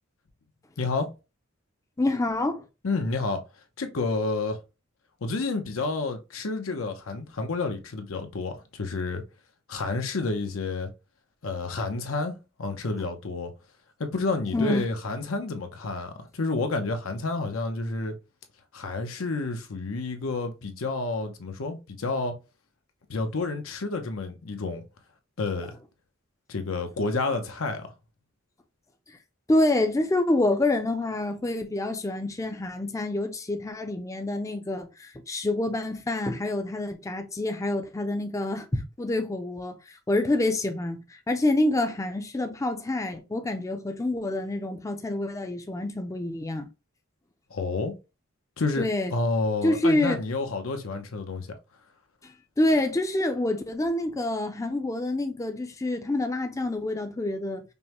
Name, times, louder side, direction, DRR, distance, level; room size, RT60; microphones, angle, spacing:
voice 1, 0.8-1.1 2.8-3.4 3.8-4.6 5.2-9.2 9.7-10.9 11.4-13.5 14.0-18.1 18.7-22.3 23.1-24.8 25.4-25.8 26.5-27.9 47.5-47.9 48.6-51.5, left 3 dB, 90° left, 0.8 m, -30 dB
voice 2, 2.0-2.6 14.5-14.8 29.5-46.7 48.8-49.1 49.6-50.2 52.2-52.3 52.6-57.6, left 2 dB, 15° left, 0.4 m, -27 dB
5.3 x 2.1 x 2.9 m
head